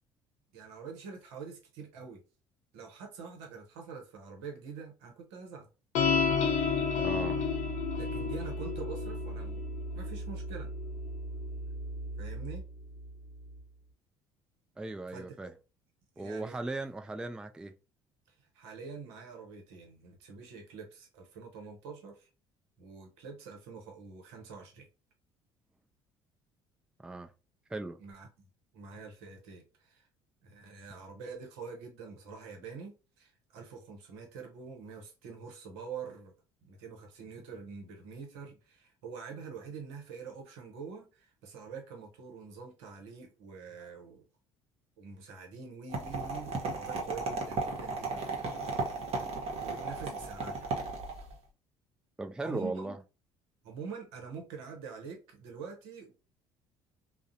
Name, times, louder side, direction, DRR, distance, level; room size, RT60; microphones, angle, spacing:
voice 1, 0.5-2.2 2.7-5.7 7.9-9.6 9.9-10.7 12.2-12.6 15.1-15.5 16.2-16.6 18.5-22.3 22.8-24.9 28.0-28.3 28.7-30.0 30.4-36.3 36.6-44.2 45.0-48.4 49.6-50.8 52.4-52.9 53.6-56.1, right 5 dB, 80° right, 0.8 m, -45 dB
sound 1, 5.9-12.6, left 4 dB, 65° left, 0.6 m, -32 dB
voice 2, 7.0-7.4 14.8-15.5 16.2-17.7 27.0-27.3 27.7-28.0 52.2-53.0, right 2 dB, 5° right, 0.3 m, -37 dB
sound 2, 45.9-51.4, right 3 dB, 50° right, 0.9 m, -35 dB
2.4 x 2.0 x 2.7 m
hypercardioid pair, 65°, 13 cm